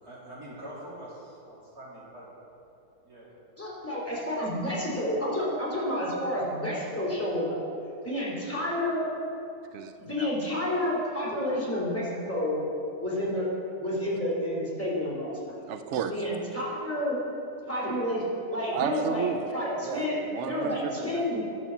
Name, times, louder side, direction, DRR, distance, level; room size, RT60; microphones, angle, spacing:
voice 1, 0.0-2.2 3.0-3.3, right 1 dB, 60° right, -8 dB, 3.9 m, -44 dB
voice 2, 3.6-7.6 8.0-9.0 10.1-12.6 13.0-13.5 13.8-15.5 16.1-17.2 17.7-18.2 18.5-19.2 19.5-20.1 20.5-21.4, left 1 dB, 10° left, -7 dB, 3.3 m, -30 dB
voice 3, 9.7-10.3 15.7-16.2 18.7-19.5 19.8-21.3, right 8 dB, 80° right, 8 dB, 0.6 m, -33 dB
11.5 x 8.1 x 7.1 m, 2.9 s
omnidirectional pair, 1.8 m